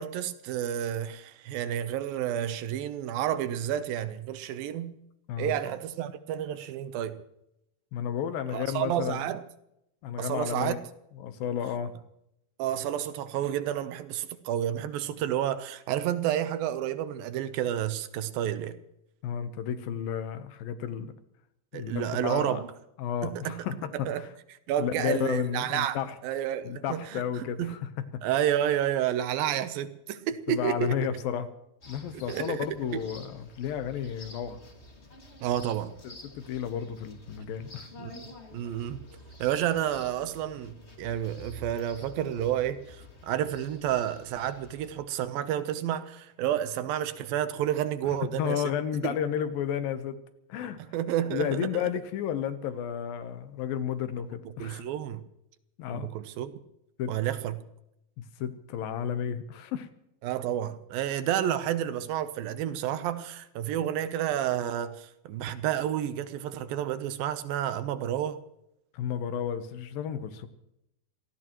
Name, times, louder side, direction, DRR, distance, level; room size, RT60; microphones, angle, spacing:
voice 1, 0.0-5.0 5.4-7.2 8.5-9.4 10.2-10.8 12.6-18.8 21.7-22.7 23.2-23.7 23.9-24.2 24.7-27.8 28.2-30.9 32.1-32.7 32.9-33.0 35.4-35.9 38.0-39.0 39.4-48.6 49.0-49.1 50.8-51.8 54.6-55.2 55.9-56.5 57.1-57.6 60.2-68.4, right 11 dB, 80° right, 2.6 m, -30 dB
voice 2, 7.9-9.2 10.0-10.8 11.2-11.9 19.2-21.1 21.7-22.6 23.0-24.3 24.8-26.2 26.7-27.9 28.2-28.3 30.5-31.5 31.9-34.6 36.0-37.9 48.3-50.2 50.5-50.8 51.3-54.8 55.8-56.1 57.0-57.1 58.4-59.9 68.9-70.5, left 9 dB, 75° left, 2.6 m, -32 dB
sound 1, 31.8-45.0, left 1 dB, 25° left, 1.6 m, -49 dB
27.5 x 17.5 x 3.0 m
omnidirectional pair, 4.3 m